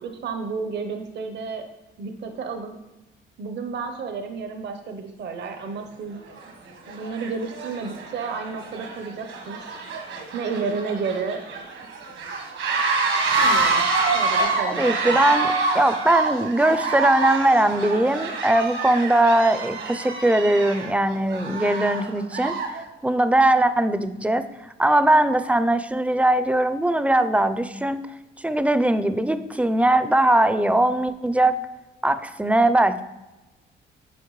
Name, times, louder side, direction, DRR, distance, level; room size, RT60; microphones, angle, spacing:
voice 1, 0.0-1.6 2.0-2.7 3.4-6.2 6.9-9.6 10.3-11.4 13.4-13.8 14.1-15.2, right 5 dB, 60° right, 6 dB, 0.8 m, -31 dB
sound 1, 5.5-5.6 6.3-6.5 6.8-22.8, right 3 dB, 80° right, 1.4 m, -27 dB
voice 2, 14.7-22.5 23.0-24.4 24.8-28.0 28.4-31.5 32.0-33.0, right 1 dB, 5° right, 12 dB, 0.4 m, -20 dB
9.6 x 5.1 x 3.1 m, 1.1 s
cardioid pair, 90°, 20 cm